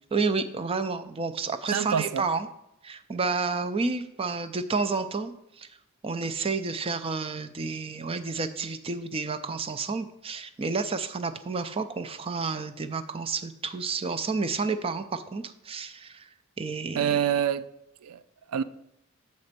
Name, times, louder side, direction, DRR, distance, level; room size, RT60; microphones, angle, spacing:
voice 1, 0.1-2.5 2.8-5.7 6.0-16.3 16.6-17.1, right 4 dB, 25° right, 0.4 m, -30 dB
voice 2, 1.7-2.2 17.0-17.7 18.0-18.2 18.5-18.6, right 8 dB, 85° right, 0.4 m, -26 dB
6.9 x 4.2 x 6.5 m
head